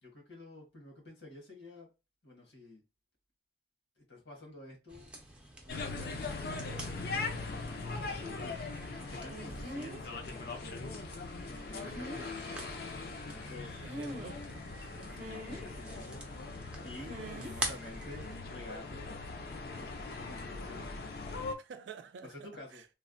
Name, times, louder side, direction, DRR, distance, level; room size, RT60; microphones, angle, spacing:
voice 1, 0.0-1.9 2.2-2.8 4.0-5.1 5.6-8.6 9.0-10.8 11.5-12.8 13.3-13.8 14.3-16.4 16.8-19.1 19.8-21.0 22.2-22.8, left 2 dB, 85° left, 1.3 m, -50 dB
sound 1, 4.9-18.4, right 1 dB, 5° right, 0.5 m, -47 dB
sound 2, 5.7-21.6, left 3 dB, 55° left, 0.5 m, -41 dB
sound 3, 9.3-10.0 11.7-12.2 13.9-14.5 15.1-15.6 17.1-17.5 17.8-18.1, equal, 45° right, 0.6 m, -43 dB
voice 2, 13.8-14.4 17.2-17.5 21.6-22.9, right 6 dB, 80° right, 0.3 m, -49 dB
3.2 x 2.1 x 2.5 m
head